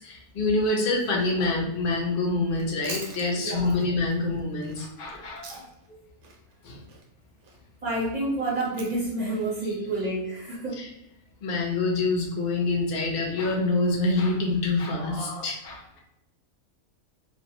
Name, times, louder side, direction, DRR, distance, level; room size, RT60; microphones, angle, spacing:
voice 1, 0.0-6.0 6.6-6.8 10.8-10.9 11.4-16.0, left 2 dB, 55° left, 0 dB, 0.6 m, -26 dB
Chewing mastication, 2.5-5.9 6.2-10.6, right 4 dB, 85° right, 1.1 m, -45 dB
voice 2, 3.3-3.8 7.8-10.9, right 2 dB, 40° right, -8 dB, 0.7 m, -29 dB
2.5 x 2.1 x 2.7 m, 0.88 s
omnidirectional pair, 1.5 m